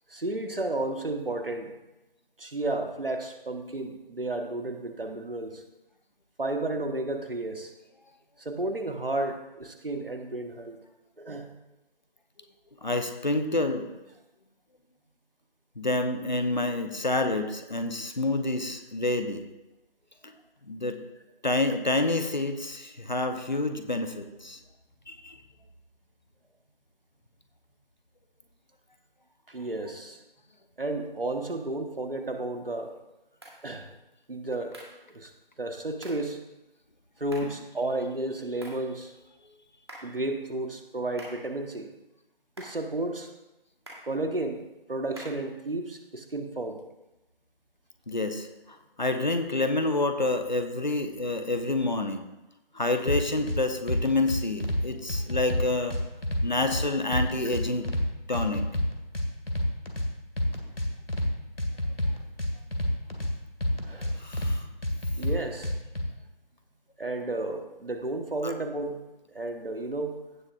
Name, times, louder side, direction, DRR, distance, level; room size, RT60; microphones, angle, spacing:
voice 1, 0.1-1.7 2.4-5.6 6.4-7.7 8.4-10.8 11.2-11.5 29.5-30.2 30.8-32.9 33.6-33.9 34.3-34.8 35.1-35.3 35.6-36.4 37.2-39.1 40.0-41.9 42.6-43.3 44.0-46.8 57.4-57.5 63.8-64.1 65.2-65.7 67.0-69.0 69.3-70.2, right 2 dB, 70° right, 5 dB, 1.4 m, -32 dB
voice 2, 12.8-13.9 15.8-19.5 20.2-20.3 20.6-21.0 21.4-24.6 25.1-25.4 29.9-30.0 37.4-37.6 38.7-38.8 48.1-52.3 52.7-56.0 56.4-57.9 58.3-58.6 64.2-64.7 68.4-68.6, left 2 dB, 50° left, 7 dB, 0.9 m, -28 dB
sound 1, 33.4-33.6 34.7-35.0 36.0-36.3 37.3-37.6 38.6-38.9 39.9-40.2 41.2-41.5 42.6-42.9 43.9-44.2 45.2-45.5, right 1 dB, 25° right, 1.5 m, -46 dB
sound 2, 53.1-53.6 53.9-54.8 55.1-56.8 57.1-58.0 58.3-60.1 60.4-61.3 61.6-63.3 63.6-64.5 64.8-66.0, left 1 dB, 75° left, 2.0 m, -28 dB
16.0 x 6.8 x 2.5 m, 0.97 s
figure-of-eight pair, 165°, 30 cm